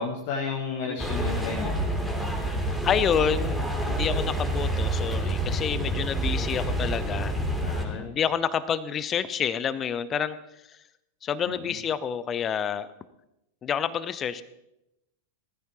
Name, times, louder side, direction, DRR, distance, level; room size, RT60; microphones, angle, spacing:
voice 1, 0.0-1.8 7.6-8.1 11.4-11.8, left 4 dB, 50° left, -2 dB, 1.7 m, -33 dB
sound 1, 1.0-7.8, right 1 dB, ahead, 3.0 m, -28 dB
voice 2, 2.4-3.6 3.9-7.3 7.8-10.4 10.7-10.8 11.2-12.9 13.6-14.4, left 8 dB, 25° left, 15 dB, 0.7 m, -28 dB
19.5 x 14.5 x 3.0 m, 0.87 s
figure-of-eight pair, 90°, 0 cm